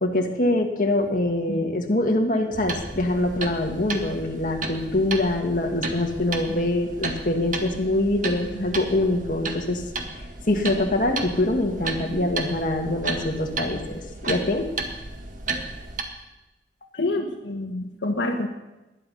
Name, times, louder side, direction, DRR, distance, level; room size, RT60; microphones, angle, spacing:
voice 1, 0.0-9.8 10.5-14.7, left 1 dB, 45° left, 2 dB, 2.0 m, -24 dB
sound 1, 2.5-16.0, right 3 dB, 45° right, 1.7 m, -33 dB
voice 2, 16.9-18.5, left 2 dB, 75° left, 3 dB, 1.4 m, -27 dB
20.0 x 11.0 x 5.6 m, 1.0 s
head